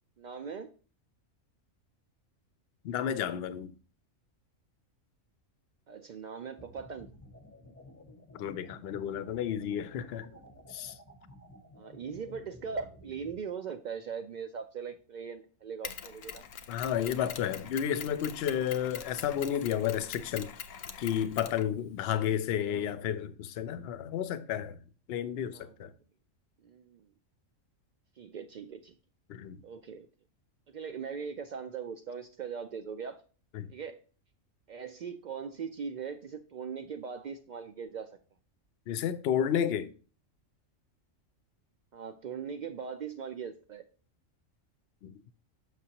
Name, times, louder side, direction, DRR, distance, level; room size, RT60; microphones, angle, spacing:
voice 1, 0.2-0.7 5.9-7.1 11.8-16.4 22.5-22.9 25.5-25.9 26.6-27.1 28.2-28.9 29.6-30.1 30.7-33.2 33.7-34.0 34.7-38.2 41.9-43.8, right 6 dB, 85° right, 0.4 m, -40 dB
voice 2, 2.8-3.7 8.3-10.3 10.7-11.0 16.7-20.5 21.0-24.8 25.1-25.9 29.3-29.6 33.5-33.7 38.9-39.9 45.0-45.2, left 9 dB, 65° left, 0.7 m, -32 dB
sound 1, 6.6-13.4, left 1 dB, 15° left, 0.6 m, -53 dB
Mechanisms, 15.8-22.2, left 7 dB, 85° left, 1.1 m, -44 dB
6.5 x 6.1 x 2.8 m
omnidirectional pair, 1.3 m